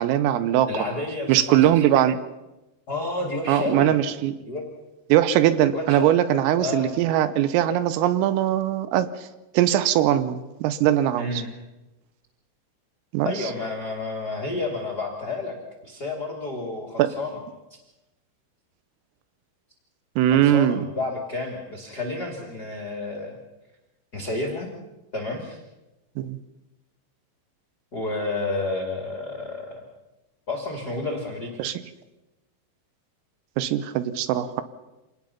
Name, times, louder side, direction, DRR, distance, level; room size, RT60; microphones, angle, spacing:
voice 1, 0.0-0.7 1.3-2.2 3.5-4.4 5.1-9.1 9.6-11.4 13.1-13.5 17.0-17.2 20.2-20.8 26.2-26.4 31.6-31.7 33.6-34.6, right 11 dB, 85° right, 13 dB, 3.5 m, -21 dB
voice 2, 0.7-1.7 2.9-4.0 4.4-4.7 5.7-6.1 6.5-6.9 11.2-11.5 13.2-17.4 17.7-17.8 20.3-23.4 24.1-24.7 25.1-25.6 27.9-29.9 30.5-31.6, left 2 dB, 35° left, 2 dB, 1.6 m, -30 dB
26.0 x 18.5 x 5.7 m, 1.0 s
omnidirectional pair, 5.9 m